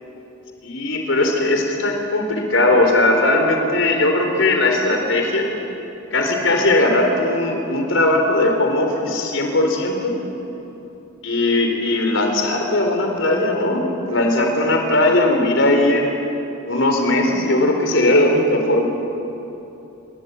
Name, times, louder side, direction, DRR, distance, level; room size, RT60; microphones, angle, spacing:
voice 1, 0.6-5.5 6.1-10.2 11.2-16.1 16.7-18.9, left 2 dB, 75° left, 3 dB, 3.9 m, -18 dB
28.0 x 22.5 x 8.2 m, 3.0 s
head